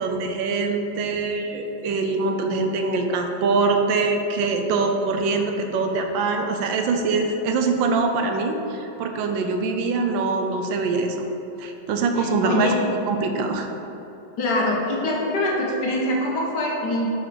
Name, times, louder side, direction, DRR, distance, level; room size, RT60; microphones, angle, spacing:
voice 1, 0.0-11.2 11.6-12.8 13.1-13.7, right 3 dB, 80° right, 4 dB, 1.3 m, -23 dB
voice 2, 12.2-12.7 14.4-17.2, left 1 dB, 65° left, -2 dB, 1.5 m, -24 dB
6.3 x 4.3 x 5.0 m, 3.0 s
omnidirectional pair, 2.1 m